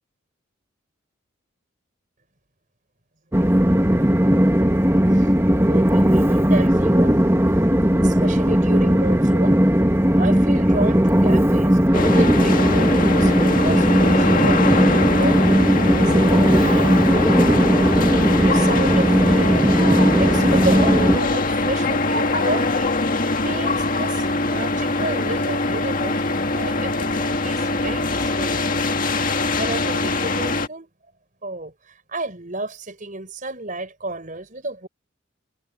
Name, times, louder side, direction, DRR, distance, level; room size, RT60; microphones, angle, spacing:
Train, 3.3-21.2, equal, 15° right, 1.5 m, -17 dB
voice 1, 5.6-7.2 8.0-9.6 10.2-11.8 12.2-17.9 18.4-19.6 20.1-22.9 23.4-26.2 26.5-28.9 29.6-30.9 31.4-31.7 32.1-34.9, right 2 dB, 40° right, 6.2 m, -31 dB
sound 1, 11.9-30.7, left 2 dB, 45° left, 1.9 m, -22 dB
head